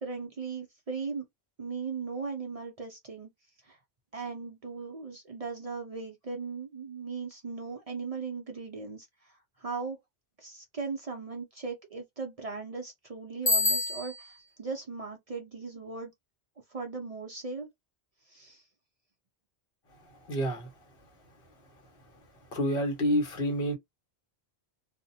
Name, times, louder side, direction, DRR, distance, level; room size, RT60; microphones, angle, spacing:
voice 1, 0.0-1.2 1.6-3.3 3.6-3.8 4.1-10.0 10.4-16.1 16.7-17.7 18.3-18.6, right 4 dB, 50° right, 0.4 m, -38 dB
Bicycle bell, 13.5-14.4, left 2 dB, 25° left, 1.0 m, -27 dB
voice 2, 20.2-20.7 22.5-23.7, equal, 60° left, 1.2 m, -28 dB
2.6 x 2.1 x 2.6 m
omnidirectional pair, 1.1 m